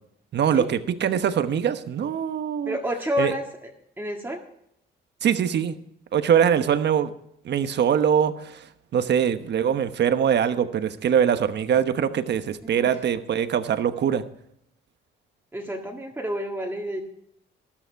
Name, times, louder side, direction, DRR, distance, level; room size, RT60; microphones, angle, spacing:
voice 1, 0.3-2.8 3.2-3.3 5.2-5.7 6.1-7.1 7.4-8.6 8.9-14.2, right 8 dB, 60° right, 10 dB, 1.1 m, -23 dB
voice 2, 2.7-3.7 4.0-4.4 12.6-13.0 15.5-17.0, equal, 10° right, 0 dB, 1.9 m, -29 dB
13.0 x 12.5 x 4.7 m, 0.74 s
cardioid pair, 90°, 20 cm